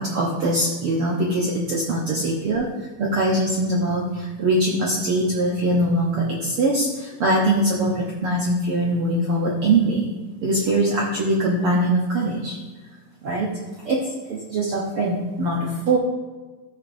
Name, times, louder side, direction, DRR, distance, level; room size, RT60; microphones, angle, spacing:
voice 1, 0.0-2.7 3.0-10.1 10.4-12.6 13.2-13.5 13.8-16.0, right 1 dB, 75° right, -3 dB, 1.2 m, -22 dB
14.5 x 5.8 x 2.6 m, 1.3 s
omnidirectional pair, 3.8 m